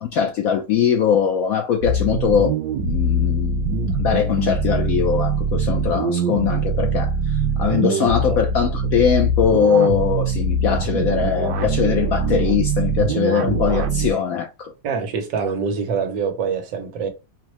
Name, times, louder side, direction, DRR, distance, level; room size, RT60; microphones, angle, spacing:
voice 1, 0.0-2.5 2.8-14.7, left 7 dB, 70° left, 0.8 m, -21 dB
sound 1, 1.8-14.1, right 3 dB, 70° right, 1.2 m, -22 dB
voice 2, 14.8-17.1, right 6 dB, 90° right, 1.6 m, -25 dB
4.6 x 2.0 x 3.0 m
omnidirectional pair, 2.0 m